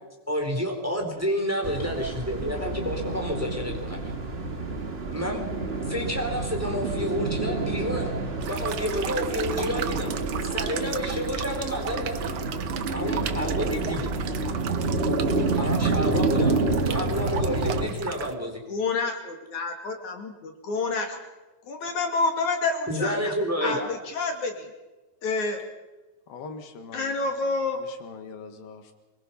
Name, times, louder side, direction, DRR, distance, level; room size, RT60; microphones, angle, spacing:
voice 1, 0.3-4.0 5.1-5.5 5.9-8.1 8.5-10.1 10.4-12.2 12.9-14.1 15.5-16.5 16.8-18.6 22.9-23.9, equal, 5° right, 2 dB, 3.8 m, -29 dB
sound 1, 1.6-17.9, right 3 dB, 30° right, 1.1 m, -28 dB
sound 2, 8.4-18.3, right 9 dB, 85° right, 1.2 m, -36 dB
voice 2, 18.7-21.2 21.6-23.3 23.6-24.7 25.2-25.6 26.9-27.8, left 3 dB, 60° left, 3 dB, 3.5 m, -28 dB
voice 3, 26.3-27.2 27.8-28.9, left 4 dB, 85° left, 6 dB, 3.5 m, -42 dB
25.0 x 23.0 x 5.7 m, 1.1 s
omnidirectional pair, 4.0 m